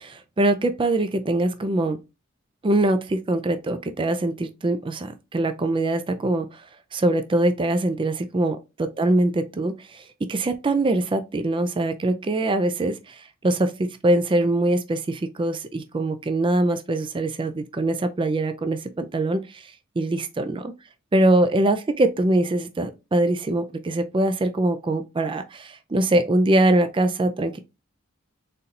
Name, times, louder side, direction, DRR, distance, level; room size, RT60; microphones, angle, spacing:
voice 1, 0.0-2.0 2.6-6.6 6.9-19.6 20.0-20.6 21.1-27.6, right 2 dB, 25° right, 0.4 m, -23 dB
4.1 x 4.0 x 2.5 m
head